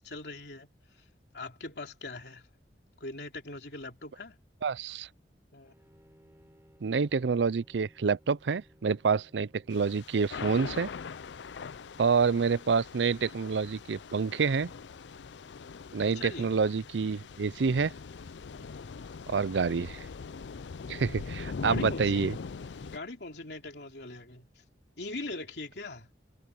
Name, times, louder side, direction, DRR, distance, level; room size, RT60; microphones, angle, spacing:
voice 1, 0.0-0.7 1.3-2.5 3.0-4.4 5.5-5.7 12.4-12.5 16.0-16.5 18.5-18.9 21.4-22.4 22.8-24.6 25.0-26.1, left 2 dB, 70° left, 3.2 m, -42 dB
voice 2, 4.6-5.1 6.8-10.9 12.0-14.7 15.9-17.9 19.3-20.0 20.9-22.4, right 5 dB, 85° right, 0.5 m, -28 dB
Bowed string instrument, 5.6-10.4, equal, 15° right, 5.8 m, -62 dB
Thunder / Rain, 9.7-23.0, left 5 dB, 90° left, 0.5 m, -41 dB
head